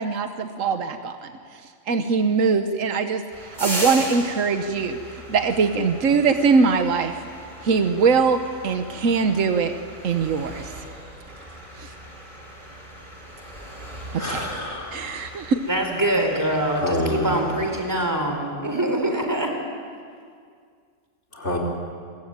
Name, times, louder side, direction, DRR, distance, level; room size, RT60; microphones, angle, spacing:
voice 1, 0.0-1.6 1.9-7.2 7.6-9.7 10.0-10.7 11.8-11.9 14.1-14.4 14.9-15.6, right 5 dB, 75° right, 7 dB, 1.4 m, -22 dB
sound 1, 3.3-18.1, equal, 40° right, 6.1 m, -38 dB
voice 2, 14.2-15.2 16.8-17.4 21.3-21.6, left 1 dB, 60° left, 1 dB, 4.9 m, -27 dB
voice 3, 15.7-19.5, right 1 dB, 15° right, 3 dB, 4.0 m, -24 dB
29.0 x 21.5 x 8.9 m, 2.1 s
omnidirectional pair, 1.4 m